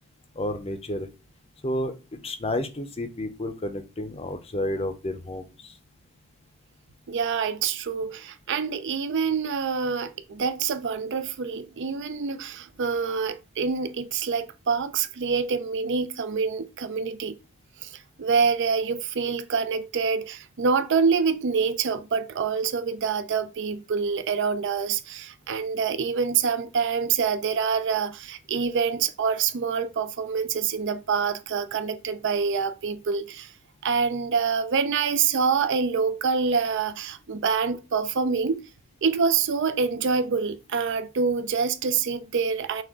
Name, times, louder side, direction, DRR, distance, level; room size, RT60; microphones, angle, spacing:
voice 1, 0.3-1.1 1.6-5.7, left 1 dB, 30° left, 0.6 m, -31 dB
voice 2, 7.1-17.4 17.8-33.5 33.8-38.7 39.0-42.8, right 5 dB, 55° right, 0.5 m, -26 dB
6.0 x 2.4 x 3.6 m
head